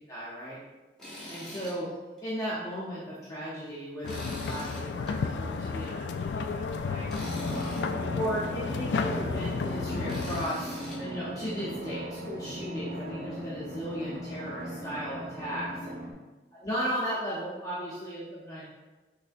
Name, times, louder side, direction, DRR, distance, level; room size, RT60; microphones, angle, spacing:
voice 1, 0.1-0.6 1.3-1.9 2.2-7.8 8.1-15.7 16.5-18.6, equal, 20° left, -8 dB, 0.8 m, -36 dB
Tools, 1.0-1.8 2.2-2.3 4.1-5.1 7.1-7.9 10.1-11.0, left 1 dB, 5° left, 1.3 m, -43 dB
sound 1, 4.0-10.5, left 4 dB, 70° left, 0.3 m, -32 dB
Drum, 7.2-16.1, equal, 50° right, 1.0 m, -38 dB
6.1 x 3.3 x 2.6 m, 1.2 s
head